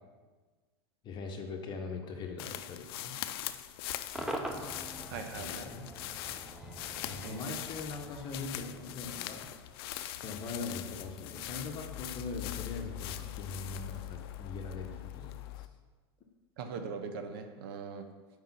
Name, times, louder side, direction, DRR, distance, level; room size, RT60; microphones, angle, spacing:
voice 1, 1.0-3.2 5.1-6.2 7.0-9.5 10.2-15.7, left 4 dB, 35° left, 4 dB, 0.8 m, -41 dB
sound 1, 2.4-15.7, left 13 dB, 60° left, 0.4 m, -42 dB
Cheering / Crowd / Fireworks, 4.1-9.4, right 1 dB, 5° right, 0.5 m, -43 dB
voice 2, 5.1-5.7 7.1-7.5 16.6-18.1, right 5 dB, 65° right, 7 dB, 0.6 m, -41 dB
4.8 x 3.9 x 5.5 m, 1.4 s
hypercardioid pair, 110°, 14 cm